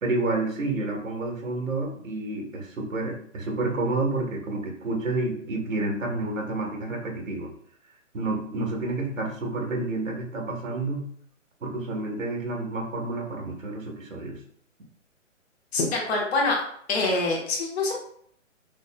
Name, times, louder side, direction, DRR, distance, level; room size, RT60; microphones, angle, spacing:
voice 1, 0.0-7.5 8.1-11.1 11.6-14.4, right 2 dB, 80° right, 1 dB, 1.4 m, -29 dB
voice 2, 15.7-16.6 16.9-18.0, left 3 dB, 50° left, -1 dB, 1.3 m, -25 dB
5.2 x 2.5 x 2.2 m, 0.65 s
hypercardioid pair, 140°, 39 cm